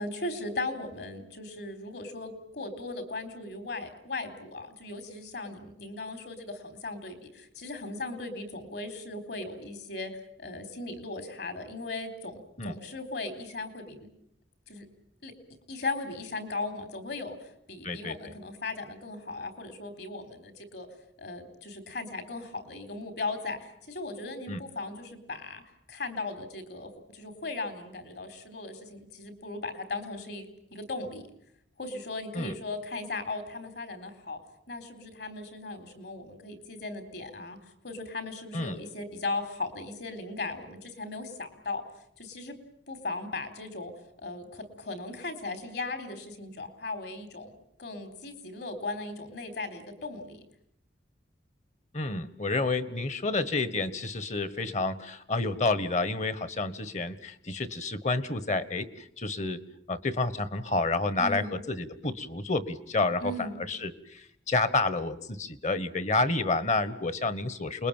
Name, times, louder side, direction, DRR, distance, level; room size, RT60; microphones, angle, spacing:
voice 1, 0.0-10.1 10.4-14.1 14.7-14.9 15.2-15.3 15.7-20.9 21.2-25.6 25.9-31.2 31.8-34.4 34.7-37.6 37.8-41.8 42.2-42.6 42.9-43.9 44.2-47.5 47.8-50.4 61.2-61.6 63.2-63.6, left 3 dB, 65° left, 10 dB, 4.1 m, -37 dB
voice 2, 17.8-18.2 24.5-24.6 32.3-32.5 38.5-38.8 51.9-59.6 59.9-67.9, left 3 dB, 40° left, 15 dB, 1.5 m, -29 dB
29.0 x 21.0 x 9.1 m, 0.72 s
head